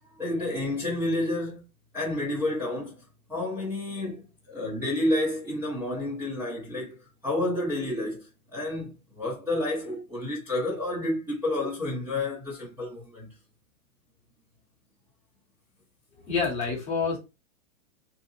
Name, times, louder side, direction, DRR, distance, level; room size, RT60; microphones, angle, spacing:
voice 1, 0.2-1.6 1.9-3.0 3.3-13.3, left 1 dB, 5° right, 0.7 m, -30 dB
voice 2, 16.2-17.2, left 5 dB, 15° left, 0.9 m, -27 dB
3.7 x 2.8 x 2.7 m
supercardioid pair, 155°, 42 cm